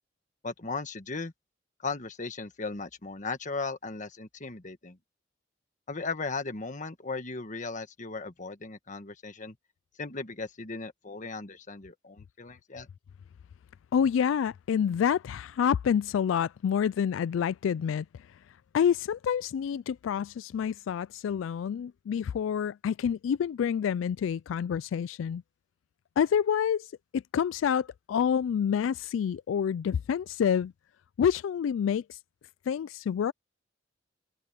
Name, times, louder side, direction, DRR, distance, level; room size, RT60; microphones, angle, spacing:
voice 1, 0.4-1.3 1.8-5.0 5.9-9.5 10.0-12.9, left 4 dB, 40° left, 1.5 m, -37 dB
voice 2, 13.9-18.1 18.7-25.4 26.2-30.7 31.2-32.2 32.7-33.3, left 8 dB, 85° left, 0.3 m, -28 dB
head